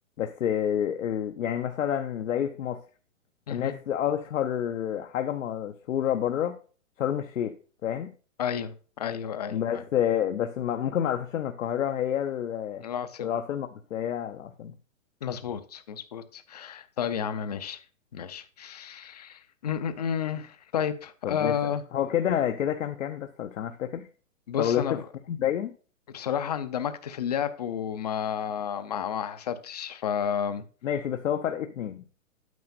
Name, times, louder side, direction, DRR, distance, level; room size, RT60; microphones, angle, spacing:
voice 1, 0.2-2.8 3.5-6.5 7.0-7.5 7.8-8.1 9.5-12.8 13.2-14.7 21.2-21.6 21.9-24.1 24.6-25.0 25.3-25.7 30.8-32.0, left 9 dB, 70° left, 0.9 m, -28 dB
voice 2, 8.4-9.8 12.8-13.3 15.2-17.8 18.1-21.8 24.5-25.0 26.1-30.6, left 8 dB, 30° left, 0.5 m, -31 dB
9.3 x 8.0 x 2.6 m
hypercardioid pair, 165°, 40 cm